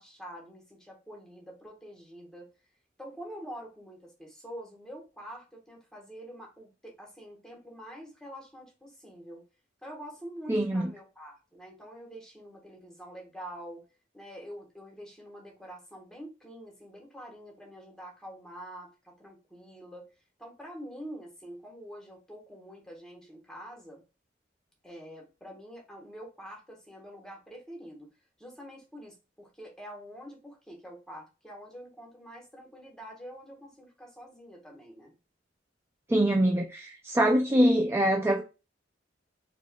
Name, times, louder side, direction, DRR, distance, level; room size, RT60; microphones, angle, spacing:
voice 1, 0.0-2.5 3.0-9.5 9.8-13.9 14.1-20.1 20.4-24.0 24.8-28.1 28.4-35.1, equal, 5° left, 1.2 m, -46 dB
voice 2, 10.5-10.9 36.1-38.4, right 1 dB, 15° right, 0.3 m, -24 dB
4.2 x 2.9 x 2.2 m
head